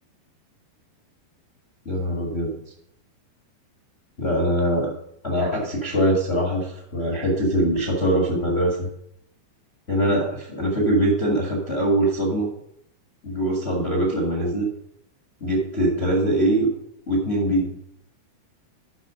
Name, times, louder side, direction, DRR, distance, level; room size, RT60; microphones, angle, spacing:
voice 1, 1.8-2.5 4.2-4.9 5.2-8.7 9.9-12.5 13.2-14.7 15.4-16.7 17.1-17.7, right 1 dB, 50° left, -2 dB, 0.7 m, -22 dB
11.5 x 5.5 x 5.0 m, 0.73 s
omnidirectional pair, 4.8 m